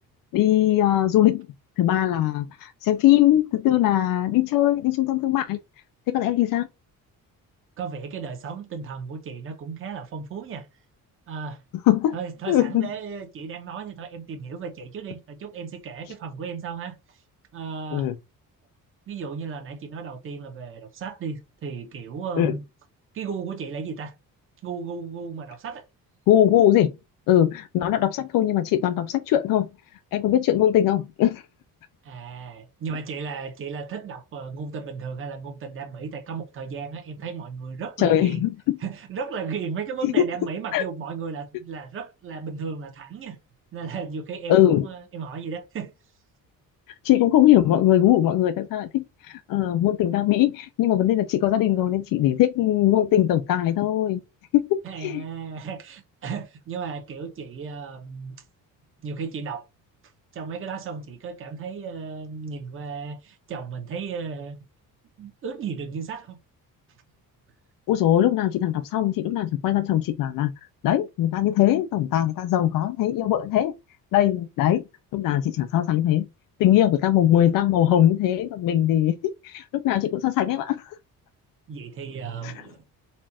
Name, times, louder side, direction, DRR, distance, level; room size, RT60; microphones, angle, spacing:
voice 1, 0.3-1.5 1.8-5.6 6.1-6.7 11.9-12.1 12.5-12.9 17.9-18.1 22.4-22.5 26.3-26.9 27.3-29.7 30.1-31.4 38.0-38.8 40.0-40.1 40.7-40.8 44.5-44.9 47.0-54.2 54.5-55.2 67.9-70.5 70.8-73.7 74.1-74.8 75.1-76.3 76.6-81.0 82.4-82.7, left 12 dB, 70° left, 0.5 m, -21 dB
voice 2, 7.8-10.7 11.3-11.6 12.1-17.2 17.5-18.1 19.1-22.6 23.1-24.1 24.6-25.8 32.0-38.4 38.8-43.4 43.7-45.9 54.8-58.3 59.0-59.7 60.3-64.6 65.2-66.4 81.7-82.8, right 5 dB, 35° right, 0.9 m, -35 dB
4.3 x 2.5 x 4.2 m
cardioid pair, 175°, 35 cm